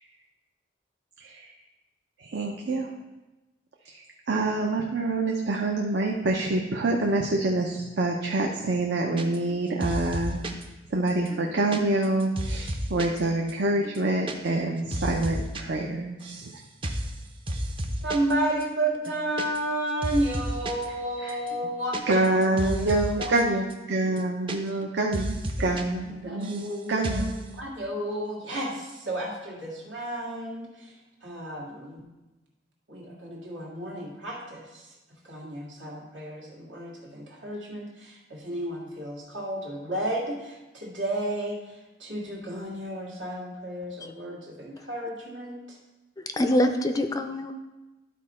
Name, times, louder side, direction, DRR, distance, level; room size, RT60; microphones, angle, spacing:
voice 1, 1.2-1.5 2.2-2.9 3.9-10.4 10.9-16.5 21.2-21.4 22.1-27.3, right 2 dB, 65° right, 0 dB, 0.7 m, -26 dB
sound 1, 9.2-9.6 9.8-10.6 11.1-13.2 13.5-13.6 13.8-14.4 14.6-15.6 15.9-16.5 16.8-17.1 17.5-18.3 18.6-18.7 19.0-19.8 20.0-20.9 21.3-23.4 23.7-23.8 24.1-24.9 25.1-25.8 26.1-26.7 27.0-27.4, equal, 30° right, 0.6 m, -32 dB
voice 2, 18.0-22.0 22.3-23.3 25.6-25.7 26.2-30.7 31.2-32.1 32.9-34.8 35.2-41.6 42.0-45.8, right 1 dB, 80° right, -3 dB, 2.1 m, -32 dB
voice 3, 46.2-47.5, left 1 dB, 20° left, 7 dB, 0.4 m, -25 dB
12.0 x 4.2 x 4.3 m, 1.1 s
head